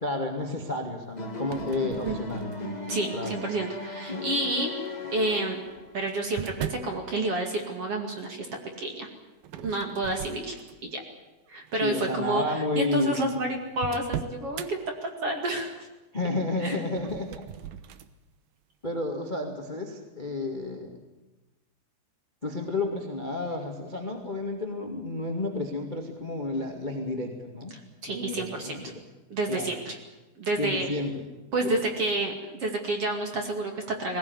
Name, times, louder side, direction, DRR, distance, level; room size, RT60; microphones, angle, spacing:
voice 1, 0.0-2.5 3.1-3.4 11.8-13.3 16.1-17.4 18.8-21.0 22.4-27.7 28.1-29.0 29.5-29.7 30.6-31.2 31.6-31.7, left 2 dB, 20° left, 3 dB, 1.2 m, -31 dB
sound 1, 1.1-6.0, left 2 dB, 45° left, 0.5 m, -36 dB
sound 2, 1.4-2.9 3.5-4.0 5.0-7.0 9.4-11.0 11.5-11.7 12.5-12.6 12.8-12.9 13.2-14.7 16.8-18.1, right 10 dB, 75° right, 2.3 m, -39 dB
voice 2, 2.9-4.7 5.1-5.6 5.9-8.5 8.8-9.1 9.6-10.5 10.8-11.0 11.5-15.7 16.6-16.8 28.0-28.8 29.3-30.0 30.4-30.9 31.5-34.2, right 2 dB, 40° right, 3 dB, 2.6 m, -29 dB
21.0 x 18.0 x 9.8 m, 1.1 s
omnidirectional pair, 5.0 m